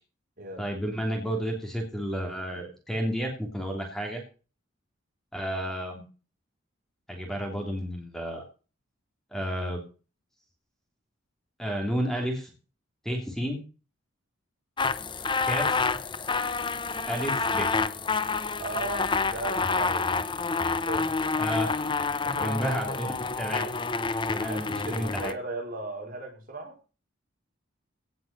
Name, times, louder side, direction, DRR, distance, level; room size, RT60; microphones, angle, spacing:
voice 1, 0.6-4.2 5.3-6.0 7.1-8.4 9.3-9.8 11.6-12.5 13.0-13.6 15.4-15.8 17.1-17.7 21.4-21.8 22.4-23.7 24.3-25.3, equal, ahead, 2 dB, 3.1 m, -31 dB
sound 1, 14.8-25.3, left 4 dB, 25° left, 0.8 m, -28 dB
voice 2, 18.6-20.2 20.5-21.1 22.2-23.0 24.4-26.8, right 2 dB, 45° right, 2 dB, 5.0 m, -37 dB
17.5 x 6.1 x 6.7 m, 0.35 s
head